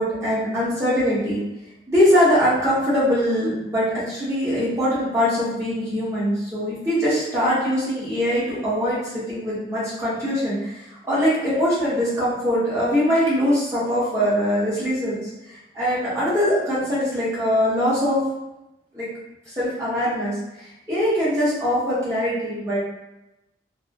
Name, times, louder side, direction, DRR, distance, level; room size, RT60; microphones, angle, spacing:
voice 1, 0.0-1.4 1.9-10.7 11.1-15.2 15.7-18.2 18.9-19.1 19.5-20.3 20.9-22.8, equal, 15° right, -10 dB, 1.0 m, -22 dB
2.8 x 2.1 x 2.5 m, 0.95 s
head